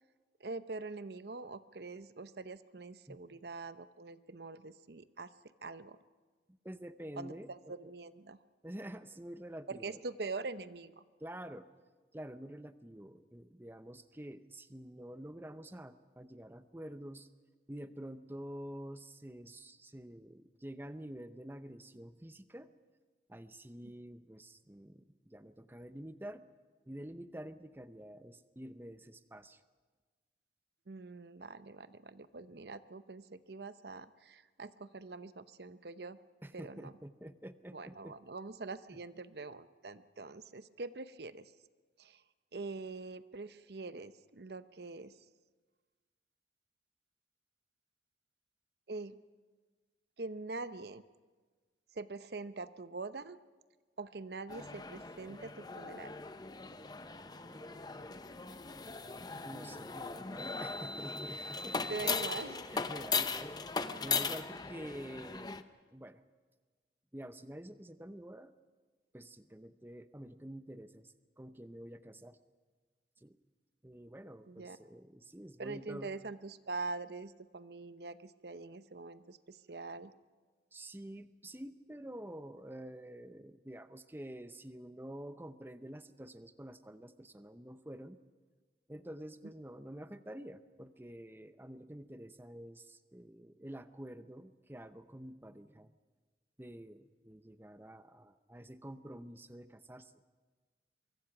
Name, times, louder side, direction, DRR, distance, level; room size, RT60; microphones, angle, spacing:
voice 1, 0.4-5.3 5.6-6.0 7.2-7.3 7.7-8.4 9.7-11.0 23.8-23.9 30.9-36.2 36.5-36.9 37.7-41.4 42.0-42.2 42.5-45.1 48.9-49.2 50.2-51.0 52.0-53.4 54.0-56.1 61.9-62.6 74.5-74.8 75.6-80.1, right 3 dB, 65° right, 13 dB, 0.7 m, -44 dB
voice 2, 6.5-7.9 8.6-10.0 11.2-11.7 12.1-17.3 17.7-22.7 23.3-26.4 26.9-29.6 36.4-38.2 38.9-39.0 57.4-58.1 59.4-61.8 62.3-65.6 65.9-66.2 67.1-68.5 69.1-72.4 73.2-73.4 73.8-76.2 80.7-88.2 88.9-95.9 96.6-100.1, right 1 dB, 10° right, 11 dB, 0.7 m, -48 dB
sound 1, 54.5-65.6, left 5 dB, 20° left, 0.7 m, -38 dB
24.0 x 23.0 x 6.0 m, 1.4 s
head